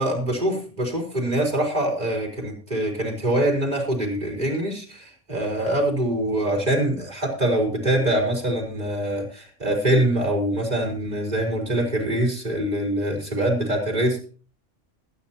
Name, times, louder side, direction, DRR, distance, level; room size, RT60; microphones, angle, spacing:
voice 1, 0.0-14.3, right 1 dB, 35° right, 0 dB, 4.1 m, -24 dB
21.5 x 9.5 x 2.9 m, 0.38 s
omnidirectional pair, 1.2 m